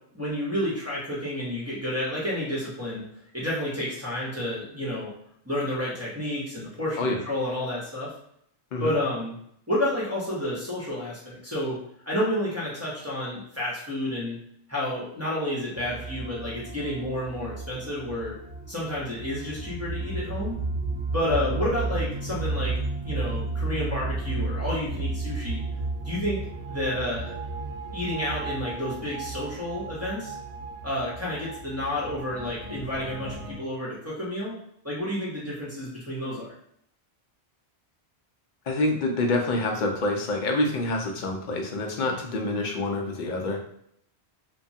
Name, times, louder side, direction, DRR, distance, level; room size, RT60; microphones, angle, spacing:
voice 1, 0.1-3.0 3.3-5.1 5.4-8.1 8.8-9.3 9.7-11.8 12.1-14.4 14.7-18.3 18.7-20.5 21.1-22.8 23.0-25.6 26.0-26.4 26.7-27.4 27.9-30.3 30.8-34.5 34.8-36.5, left 1 dB, 15° right, -8 dB, 0.7 m, -30 dB
sound 1, 15.7-33.5, right 3 dB, 85° right, 1.0 m, -33 dB
voice 2, 38.7-43.6, left 2 dB, 55° left, 2 dB, 0.6 m, -27 dB
3.0 x 2.2 x 2.7 m, 0.70 s
omnidirectional pair, 1.1 m